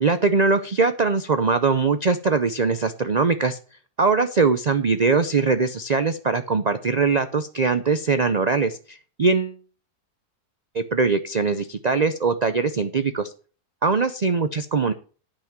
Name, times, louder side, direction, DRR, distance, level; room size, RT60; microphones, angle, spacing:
voice 1, 0.0-3.6 4.0-9.6 10.7-13.3 13.8-14.9, right 4 dB, 45° right, 10 dB, 0.5 m, -21 dB
10.0 x 6.0 x 7.4 m, 0.39 s
omnidirectional pair, 1.6 m